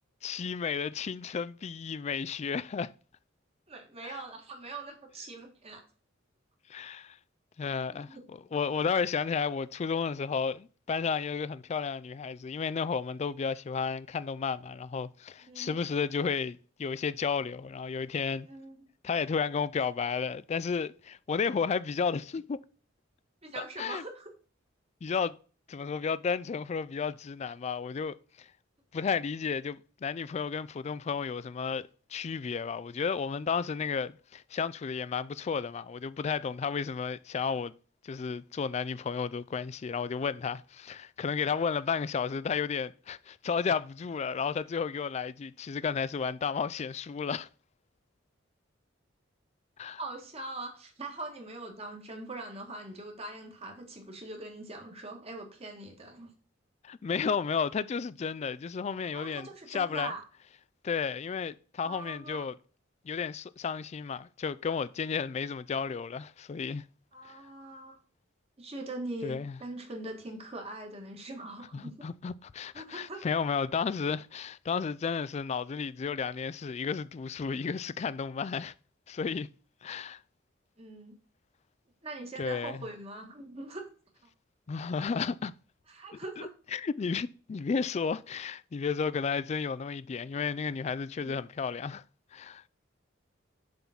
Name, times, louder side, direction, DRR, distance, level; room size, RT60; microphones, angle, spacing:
voice 1, 0.2-2.9 4.0-4.2 6.7-7.2 7.6-18.5 19.0-22.6 23.6-24.0 25.0-25.4 25.7-28.5 28.9-37.7 38.0-47.5 49.8-50.0 56.8-60.1 60.8-62.6 63.1-66.8 67.2-67.3 69.2-69.5 71.7-78.7 79.1-79.5 79.8-80.2 82.4-82.8 84.7-85.5 86.1-92.0 92.3-92.6, left 6 dB, 35° left, 0.3 m, -33 dB
voice 2, 3.7-5.8 7.9-8.2 15.4-15.8 18.4-18.8 23.4-24.3 50.0-56.3 59.1-60.2 61.8-62.5 67.1-68.0 68.6-72.1 72.7-73.2 80.8-81.2 82.0-83.9 84.2-84.3 85.9-86.5 91.2-91.3, right 2 dB, 30° right, 1.7 m, -42 dB
7.0 x 3.9 x 5.8 m
head